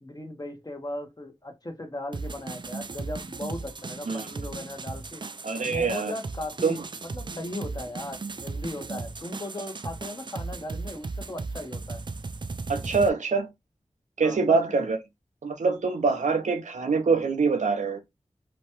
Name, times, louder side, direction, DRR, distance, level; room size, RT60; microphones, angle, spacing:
voice 1, 0.0-5.2 5.6-12.0 14.2-14.9, left 1 dB, 30° left, 0.8 m, -37 dB
sound 1, 2.1-13.1, right 3 dB, 40° right, 0.3 m, -36 dB
voice 2, 5.4-6.1 6.6-6.8 12.7-13.5 14.2-15.0 15.4-18.0, right 4 dB, 80° right, 0.6 m, -24 dB
2.9 x 2.2 x 2.8 m
wide cardioid pair, 50°, 12 cm